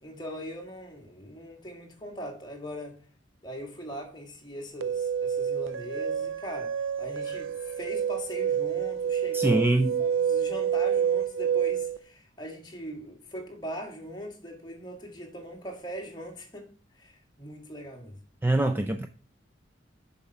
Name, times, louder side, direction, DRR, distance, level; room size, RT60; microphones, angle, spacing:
voice 1, 0.0-3.0 3.4-9.7 10.0-16.7 17.0-18.2, equal, 20° left, 1.8 m, -41 dB
sound 1, 4.8-12.0, right 8 dB, 85° right, 0.6 m, -28 dB
voice 2, 9.3-9.9 18.4-19.1, right 1 dB, 10° right, 0.4 m, -24 dB
7.0 x 5.7 x 5.4 m
head